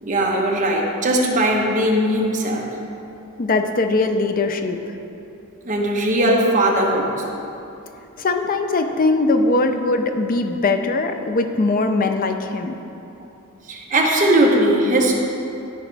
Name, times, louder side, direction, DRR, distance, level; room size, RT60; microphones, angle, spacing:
voice 1, 0.0-2.8 5.6-7.4 13.7-15.1, right 1 dB, 35° right, -1 dB, 1.0 m, -19 dB
voice 2, 3.4-4.8 8.2-12.8, left 3 dB, 40° left, 6 dB, 0.5 m, -20 dB
13.5 x 5.1 x 3.4 m, 2.8 s
head